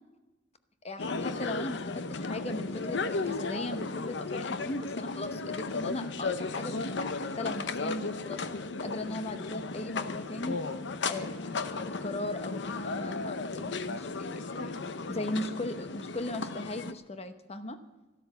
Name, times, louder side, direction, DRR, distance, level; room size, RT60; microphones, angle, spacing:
voice 1, 0.8-8.4 8.8-10.6 11.1-14.7 15.1-17.8, left 2 dB, 35° left, 9 dB, 1.0 m, -38 dB
sound 1, 1.0-16.9, left 3 dB, 70° left, 0.8 m, -35 dB
12.5 x 12.5 x 6.8 m, 1.1 s
head